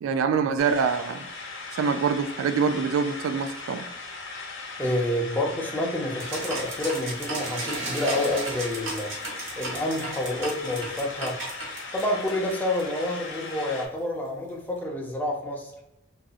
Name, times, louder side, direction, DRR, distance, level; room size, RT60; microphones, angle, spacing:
voice 1, 0.0-1.3 1.8-3.9, right 6 dB, 85° right, 9 dB, 0.3 m, -25 dB
sound 1, 0.6-13.9, left 3 dB, 65° left, 0.7 m, -38 dB
voice 2, 4.8-9.1 9.6-11.4 11.9-15.7, left 1 dB, 10° left, -1 dB, 0.5 m, -28 dB
sound 2, 6.2-13.0, right 2 dB, 70° right, 0.9 m, -35 dB
3.8 x 2.6 x 2.3 m, 0.88 s
head